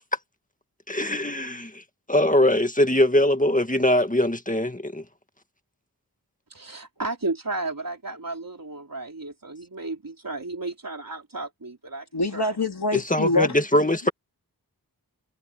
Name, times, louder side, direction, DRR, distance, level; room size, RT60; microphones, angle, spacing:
voice 1, 1.0-1.5 2.1-4.7 13.1-14.1, left 1 dB, 20° left, 1.8 m, -21 dB
voice 2, 6.5-12.1 12.3-12.5, right 2 dB, 60° right, 3.9 m, -33 dB
voice 3, 12.1-13.6, left 2 dB, 90° left, 2.7 m, -24 dB
wide cardioid pair, 50°, 38 cm